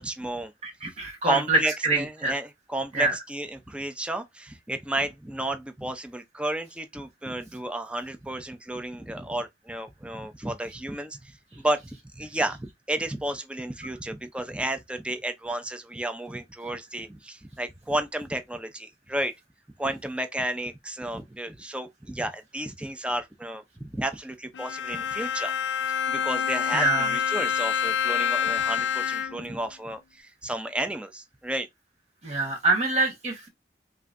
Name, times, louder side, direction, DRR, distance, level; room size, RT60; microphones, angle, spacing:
voice 1, 0.0-0.5 1.2-19.3 19.8-25.5 26.1-31.7, right 1 dB, 5° right, 0.5 m, -32 dB
voice 2, 0.6-2.3 2.9-3.1 26.7-27.1 32.2-33.5, right 2 dB, 40° right, 1.2 m, -25 dB
Bowed string instrument, 24.5-29.6, left 7 dB, 80° left, 0.5 m, -27 dB
5.4 x 2.7 x 2.5 m
head